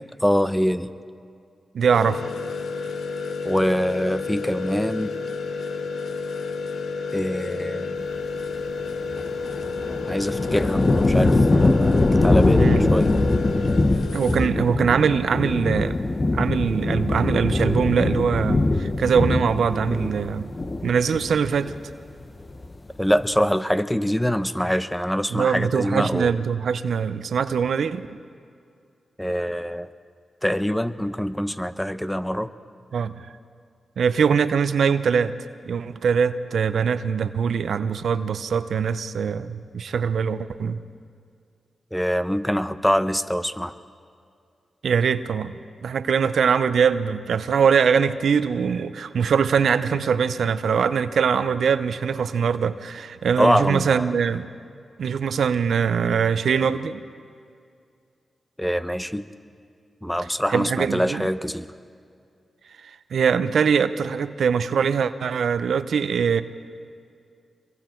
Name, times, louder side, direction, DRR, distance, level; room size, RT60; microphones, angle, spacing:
voice 1, 0.2-0.9 3.4-5.1 7.1-8.1 10.1-13.1 23.0-26.4 29.2-29.9 30.4-32.5 41.9-43.7 53.4-54.1 58.6-59.3 60.0-61.7, equal, 5° left, 11 dB, 1.0 m, -24 dB
voice 2, 1.7-2.2 12.6-12.9 14.1-16.0 16.3-20.5 20.8-21.7 25.3-28.0 32.9-33.3 34.0-35.3 35.6-40.8 44.8-45.5 45.8-54.5 55.0-57.0 60.5-61.3 62.8-66.4, right 6 dB, 80° right, 12 dB, 0.7 m, -22 dB
sound 1, 1.9-14.5, left 4 dB, 80° left, 1.1 m, -31 dB
sound 2, 9.1-21.9 22.2-22.9, left 2 dB, 40° left, 1.2 m, -22 dB
27.0 x 23.0 x 4.6 m, 2.3 s
supercardioid pair, 45°, 0 cm